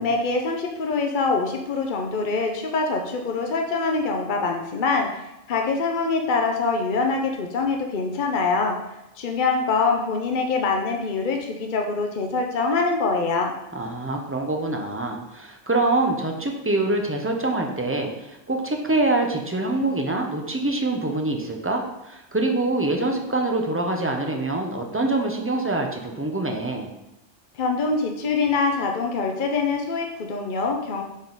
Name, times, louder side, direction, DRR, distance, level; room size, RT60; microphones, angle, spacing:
voice 1, 0.0-8.8 9.2-13.5 27.5-31.0, left 4 dB, 50° left, 2 dB, 0.8 m, -24 dB
voice 2, 13.7-26.9, right 2 dB, 15° right, 2 dB, 0.7 m, -25 dB
9.0 x 3.8 x 4.0 m, 0.90 s
omnidirectional pair, 1.2 m